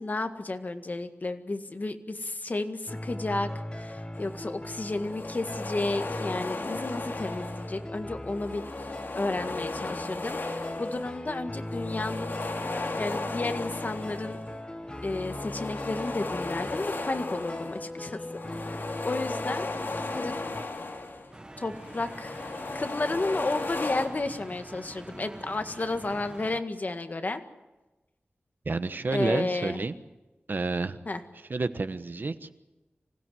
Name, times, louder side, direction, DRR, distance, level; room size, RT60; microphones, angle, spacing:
voice 1, 0.0-8.9 9.2-12.3 13.0-14.4 15.0-18.2 18.6-19.7 20.1-20.4 21.6-22.5 22.7-27.4 29.1-29.8 31.1-31.2, left 2 dB, 45° left, 7 dB, 1.8 m, -32 dB
sound 1, 2.9-20.6, left 1 dB, 20° left, 1.7 m, -39 dB
sound 2, 4.2-4.4 4.8-7.9 8.2-11.3 11.6-14.5 14.9-21.3 21.7-24.1, left 3 dB, 60° left, 3.0 m, -36 dB
sound 3, 21.3-26.6, right 1 dB, 20° right, 1.2 m, -45 dB
voice 2, 28.6-30.0 30.5-31.0 31.5-32.5, right 3 dB, 55° right, 11 dB, 1.3 m, -29 dB
26.0 x 16.5 x 7.9 m, 1.1 s
wide cardioid pair, 90°, 4 cm